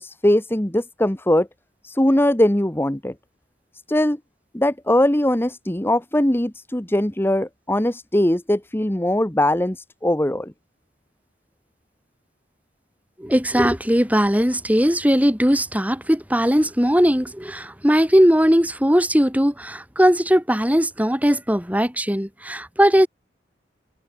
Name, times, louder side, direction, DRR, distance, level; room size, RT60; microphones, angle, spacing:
voice 1, 0.0-1.5 1.8-3.1 3.9-4.2 4.5-10.5, left 1 dB, 15° left, 1.2 m, -20 dB
voice 2, 13.2-23.1, equal, 10° right, 5.9 m, -19 dB
head